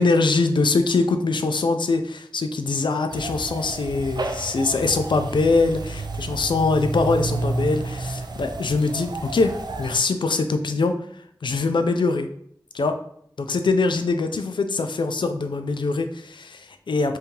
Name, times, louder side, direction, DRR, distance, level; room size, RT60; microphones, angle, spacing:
voice 1, 0.0-10.9 11.4-12.3 12.7-13.0 13.4-17.2, left 3 dB, 80° left, 7 dB, 0.4 m, -23 dB
sound 1, 3.1-10.0, right 3 dB, 60° right, 0.4 m, -31 dB
3.6 x 2.7 x 2.9 m, 0.67 s
wide cardioid pair, 45°, 8 cm